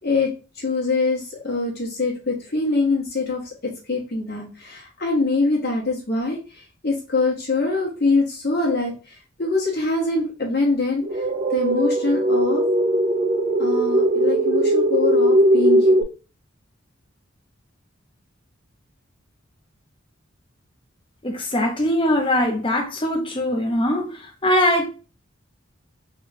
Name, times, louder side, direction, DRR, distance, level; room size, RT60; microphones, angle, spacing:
voice 1, 0.6-3.4 3.9-6.4 6.8-8.9 9.4-11.0 11.5-12.6 13.6-15.9, left 3 dB, 55° left, 1.4 m, -23 dB
sound 1, 11.0-16.0, right 1 dB, 35° right, 0.3 m, -19 dB
voice 2, 21.2-24.9, left 1 dB, 25° left, 0.7 m, -21 dB
3.6 x 2.3 x 3.5 m
head